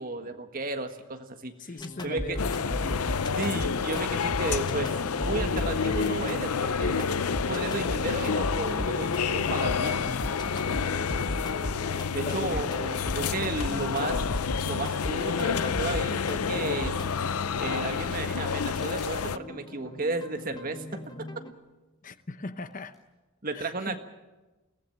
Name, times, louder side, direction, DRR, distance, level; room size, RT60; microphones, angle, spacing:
voice 1, 0.0-1.5 2.0-2.4 3.4-10.1 12.1-14.2 14.6-16.9 17.6-20.8 23.4-24.0, right 3 dB, 40° right, 1.6 m, -33 dB
voice 2, 1.6-3.6 12.2-12.7 22.0-23.0 23.5-24.0, left 2 dB, 35° left, 0.8 m, -39 dB
sound 1, 1.8-21.5, left 1 dB, 20° left, 1.2 m, -37 dB
sound 2, 2.4-19.4, left 6 dB, 90° left, 0.6 m, -29 dB
sound 3, 16.9-17.4 18.7-19.2 19.7-19.8 20.9-21.1 21.3-21.4 22.7-23.1, equal, ahead, 5.4 m, -54 dB
22.5 x 17.0 x 8.8 m
head